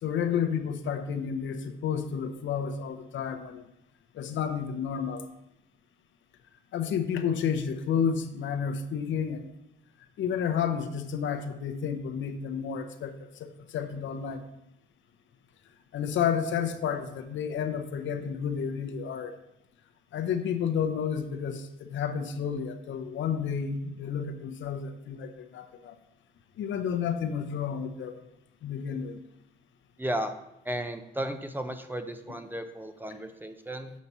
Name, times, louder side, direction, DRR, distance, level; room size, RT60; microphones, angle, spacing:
voice 1, 0.0-3.6 4.1-5.2 6.7-9.5 10.2-14.5 15.9-19.4 20.1-26.0 26.6-28.2 28.6-29.2, left 7 dB, 70° left, 7 dB, 0.8 m, -31 dB
voice 2, 30.0-30.3 30.6-33.9, right 1 dB, 10° right, 8 dB, 0.6 m, -34 dB
7.4 x 4.1 x 5.5 m, 0.85 s
cardioid pair, 90°, 20 cm